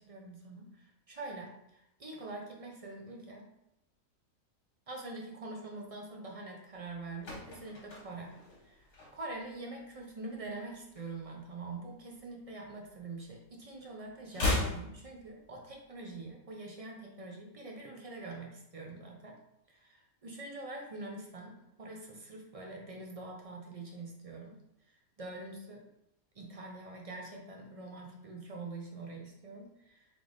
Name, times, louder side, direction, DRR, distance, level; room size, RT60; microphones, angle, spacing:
voice 1, 0.0-3.5 4.9-8.3 8.6-19.4 19.7-24.6 24.9-25.8 26.4-30.1, right 2 dB, 45° right, -1 dB, 0.4 m, -45 dB
sound 1, 6.8-9.5 9.8-10.1 10.4-11.8 12.1-13.5 13.7-15.8 16.1-16.2, left 2 dB, 55° left, 1.4 m, -37 dB
3.3 x 3.3 x 3.8 m, 0.83 s
omnidirectional pair, 1.5 m